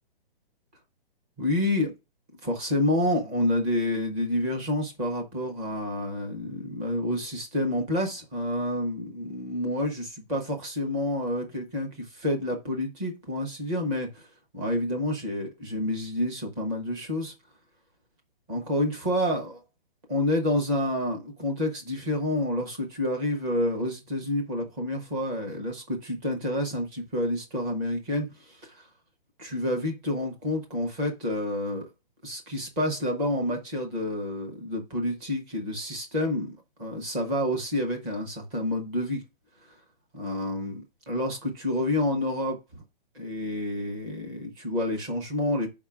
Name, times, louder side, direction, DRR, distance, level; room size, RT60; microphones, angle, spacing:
voice 1, 1.4-1.9 2.4-14.3 14.5-17.3 18.5-19.6 20.1-28.9 29.4-31.9 32.2-39.2 40.1-42.8 43.1-45.7, left 1 dB, 10° right, 0.5 m, -29 dB
4.9 x 3.6 x 5.5 m
hypercardioid pair, 165°, 29 cm